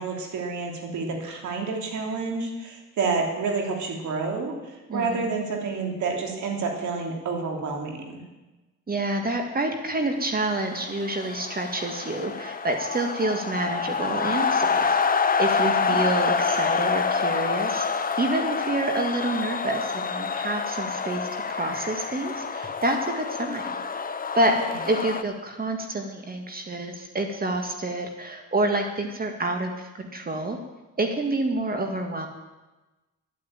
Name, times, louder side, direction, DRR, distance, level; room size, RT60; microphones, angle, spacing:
voice 1, 0.0-8.2 15.6-16.0 24.5-24.6, right 4 dB, 75° right, 1 dB, 3.4 m, -29 dB
voice 2, 4.9-5.3 8.9-17.8 18.2-23.8 24.4-24.5 24.9-30.6 31.0-32.3, right 2 dB, 30° right, 4 dB, 1.9 m, -28 dB
sound 1, 10.4-25.2, left 5 dB, 30° left, 1.0 m, -27 dB
11.5 x 9.4 x 8.9 m, 1.1 s
cardioid pair, 90°, 30 cm